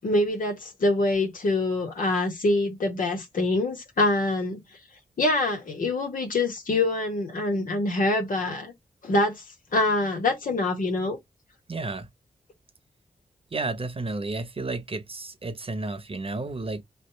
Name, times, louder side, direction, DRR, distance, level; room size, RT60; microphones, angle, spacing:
voice 1, 0.0-4.6 5.2-8.7 9.0-9.4 9.7-11.2, left 2 dB, 70° left, 1.8 m, -25 dB
voice 2, 11.7-12.1 13.5-16.8, right 3 dB, 40° right, 1.1 m, -32 dB
3.3 x 2.7 x 4.0 m
cardioid pair, 50°, 14 cm